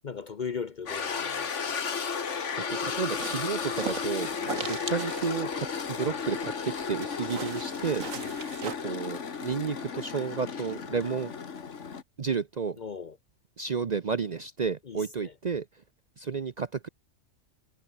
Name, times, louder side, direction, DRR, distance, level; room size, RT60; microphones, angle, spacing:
voice 1, 0.0-1.8 4.5-4.7 8.1-8.4 12.8-13.2 14.8-15.3, left 6 dB, 45° left, 0.7 m, -38 dB
sound 1, 0.9-12.0, left 6 dB, 65° left, 1.9 m, -34 dB
voice 2, 2.7-4.3 4.6-5.7 6.0-8.1 8.6-11.3 12.2-12.8 13.6-15.7 16.2-16.9, right 5 dB, 45° right, 0.6 m, -31 dB
sound 2, 2.9-8.7, right 6 dB, 80° right, 2.1 m, -40 dB
omnidirectional pair, 1.4 m